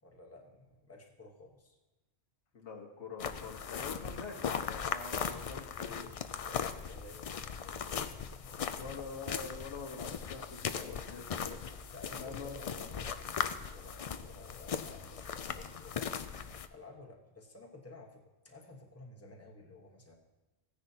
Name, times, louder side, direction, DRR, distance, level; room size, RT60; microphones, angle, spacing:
voice 1, 0.0-1.8 6.4-8.9 11.9-16.4 16.7-20.1, left 2 dB, 15° left, 0 dB, 1.2 m, -53 dB
voice 2, 2.5-6.1 8.8-11.7 12.2-12.7, left 4 dB, 85° left, 1 dB, 1.5 m, -45 dB
sound 1, 3.2-16.7, left 7 dB, 60° left, 0.3 m, -39 dB
15.5 x 9.9 x 2.8 m, 1.1 s
omnidirectional pair, 1.1 m